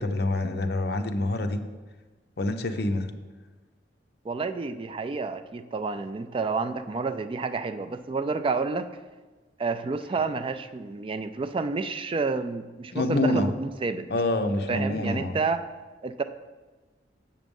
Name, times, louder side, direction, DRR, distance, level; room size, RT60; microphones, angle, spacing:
voice 1, 0.0-1.6 2.4-3.1 12.9-13.5 14.1-15.4, left 2 dB, 60° left, 7 dB, 0.7 m, -26 dB
voice 2, 4.2-8.9 9.6-14.1 14.7-15.7 16.0-16.2, right 4 dB, 30° right, 9 dB, 0.3 m, -29 dB
7.4 x 7.0 x 5.3 m, 1.3 s
head